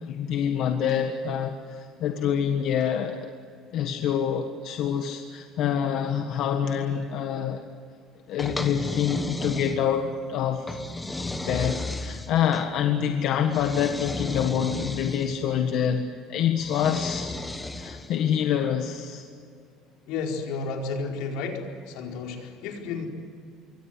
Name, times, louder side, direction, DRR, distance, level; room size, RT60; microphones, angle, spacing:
voice 1, 0.0-3.3 3.7-7.6 8.3-10.8 11.5-17.3 17.7-19.2, left 8 dB, 50° left, 5 dB, 1.5 m, -26 dB
sound 1, 8.4-10.1 10.7-12.7 13.5-15.4 16.6-18.2, left 2 dB, 10° left, 1.3 m, -34 dB
voice 2, 20.1-23.1, left 4 dB, 75° left, 2 dB, 4.6 m, -32 dB
26.5 x 24.0 x 7.9 m, 2.3 s
cardioid pair, 180°, 0 cm